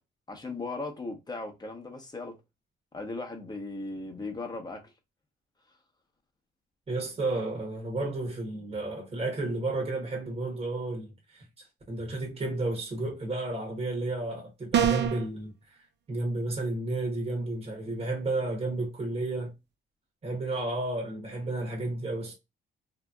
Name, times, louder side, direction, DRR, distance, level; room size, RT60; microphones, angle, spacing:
voice 1, 0.3-2.4 2.9-4.9, left 3 dB, 20° left, 1.0 m, -37 dB
voice 2, 6.9-11.4 11.9-15.8 16.1-19.5 20.2-22.3, right 2 dB, 30° right, 1.1 m, -32 dB
sound 1, 14.7-15.3, right 9 dB, 60° right, 0.6 m, -24 dB
3.3 x 2.9 x 2.3 m
cardioid pair, 90°, 20 cm